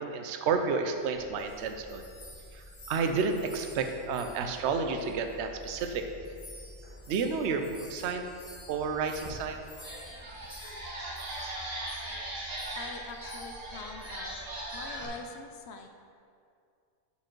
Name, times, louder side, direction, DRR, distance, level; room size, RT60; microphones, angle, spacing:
voice 1, 0.0-2.0 2.5-6.1 7.1-8.4 8.7-9.7, right 5 dB, 70° right, 6 dB, 0.9 m, -31 dB
sound 1, 1.1-5.4 5.6-11.6 11.9-12.1 12.6-12.9 13.2-13.7 14.0-14.2 14.7-15.0, left 1 dB, 45° left, 1.3 m, -53 dB
sound 2, 1.1-15.1, equal, 25° left, 1.3 m, -51 dB
sound 3, 9.2-9.3 9.7-15.1, right 1 dB, 35° right, 1.1 m, -39 dB
voice 2, 12.8-14.4 14.7-15.9, left 3 dB, 70° left, 4 dB, 0.8 m, -44 dB
7.0 x 4.8 x 4.5 m, 2.3 s
omnidirectional pair, 1.2 m